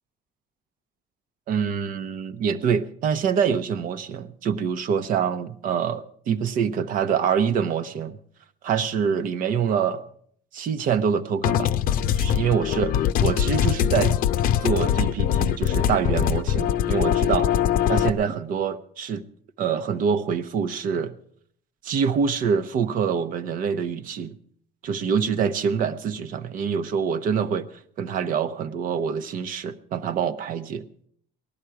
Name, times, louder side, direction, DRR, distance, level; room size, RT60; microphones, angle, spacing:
voice 1, 1.5-8.2 8.6-10.0 10.5-11.7 12.2-14.2 14.6-17.5 17.9-19.2 19.6-21.2 21.8-24.3 24.8-27.7 28.0-30.8, right 7 dB, 55° right, 11 dB, 0.9 m, -25 dB
sound 1, 11.4-18.1, left 10 dB, 55° left, 0.6 m, -22 dB
18.5 x 13.0 x 4.7 m, 0.62 s
cardioid pair, 165°, 17 cm